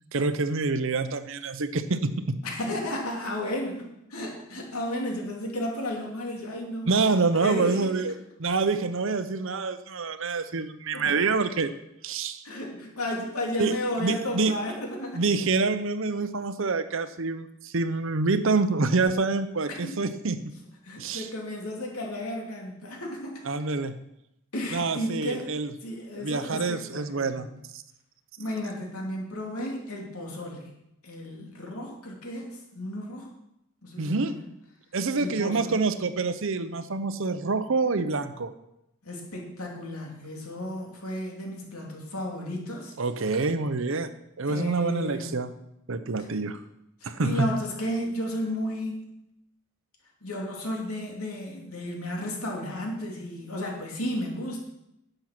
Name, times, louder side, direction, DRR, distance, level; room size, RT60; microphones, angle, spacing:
voice 1, 0.1-2.4 6.9-11.7 12.0-12.4 13.6-14.6 15.1-20.4 21.0-21.3 23.5-24.0 24.7-25.7 26.2-27.5 27.7-27.8 34.0-34.4 34.9-38.5 43.0-44.1 44.4-45.5 45.9-46.6 47.0-47.6, right 3 dB, 60° right, 11 dB, 0.8 m, -27 dB
voice 2, 2.4-7.1 7.4-7.9 10.9-11.1 12.4-15.2 19.8-19.9 20.8-23.4 24.5-25.5 25.8-27.5 28.4-30.7 31.0-33.3 33.8-34.3 35.2-35.8 39.0-42.9 44.5-45.3 47.0-49.1 50.2-54.6, left 1 dB, 75° left, 0 dB, 3.0 m, -33 dB
10.5 x 7.8 x 6.0 m, 0.83 s
head